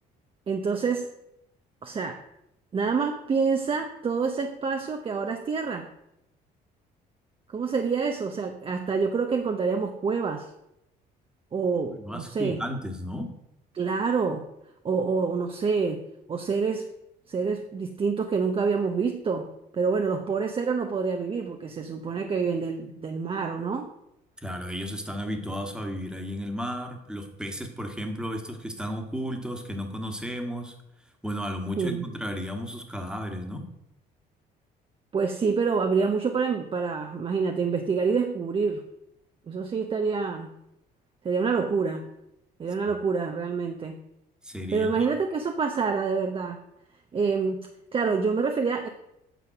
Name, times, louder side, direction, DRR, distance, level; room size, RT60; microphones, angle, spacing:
voice 1, 0.5-1.1 1.8-2.2 2.7-5.9 7.5-10.5 11.5-12.6 13.7-14.5 14.8-16.0 16.3-16.9 17.3-19.5 19.7-23.9 31.8-32.0 35.1-38.8 39.5-40.5 41.2-42.0 42.6-44.0 44.7-46.6 47.1-48.9, right 5 dB, 30° right, 5 dB, 0.8 m, -27 dB
voice 2, 12.0-13.3 24.4-30.7 31.2-33.7 44.4-45.0, equal, 5° right, 5 dB, 1.6 m, -33 dB
9.1 x 5.7 x 5.9 m, 0.82 s
cardioid pair, 110°, 17 cm